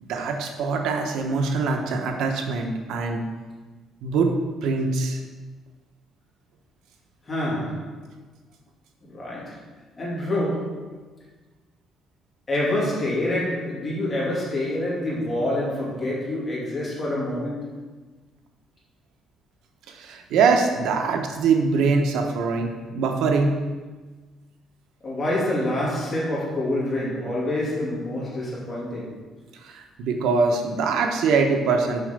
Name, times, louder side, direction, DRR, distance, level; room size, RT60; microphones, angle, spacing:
voice 1, 0.0-3.2 4.0-4.3 4.6-5.2 19.9-23.6 29.6-32.0, right 4 dB, 85° right, 3 dB, 1.0 m, -23 dB
voice 2, 7.3-8.0 9.1-9.6 10.0-11.0 12.5-17.8 25.0-29.2, left 1 dB, 25° left, -6 dB, 2.8 m, -27 dB
6.9 x 5.8 x 5.3 m, 1.3 s
cardioid pair, 155°, 0 cm